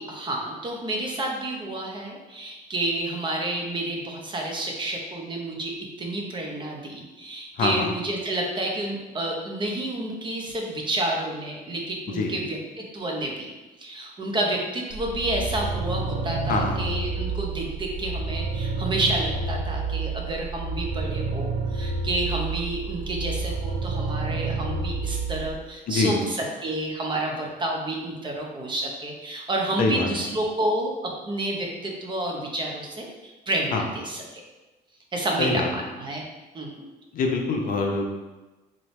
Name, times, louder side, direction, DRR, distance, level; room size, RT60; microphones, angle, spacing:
voice 1, 0.0-5.7 6.0-13.5 13.8-34.2 35.1-36.2 36.5-36.8, right 1 dB, 30° right, 0 dB, 0.8 m, -29 dB
voice 2, 7.6-7.9 12.1-12.3 16.5-16.8 25.9-26.2 29.8-30.1 33.7-33.8 35.4-35.7 37.1-38.1, left 3 dB, 55° left, 2 dB, 0.7 m, -24 dB
sound 1, 14.9-25.6, right 3 dB, 70° right, 0.6 m, -29 dB
3.8 x 3.2 x 3.2 m, 1.1 s
cardioid pair, 110°, 17 cm